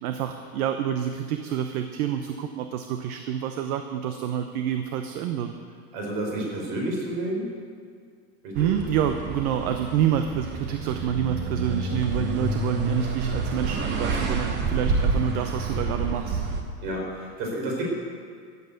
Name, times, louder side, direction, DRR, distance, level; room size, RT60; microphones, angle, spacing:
voice 1, 0.0-5.5 8.5-16.4, right 9 dB, 65° right, 7 dB, 1.0 m, -27 dB
voice 2, 5.9-7.5 8.4-8.7 16.8-17.8, right 1 dB, 45° right, -1 dB, 4.8 m, -30 dB
sound 1, 8.5-16.6, right 3 dB, 20° right, 1.0 m, -28 dB
14.0 x 8.2 x 8.1 m, 2.1 s
supercardioid pair, 165°, 47 cm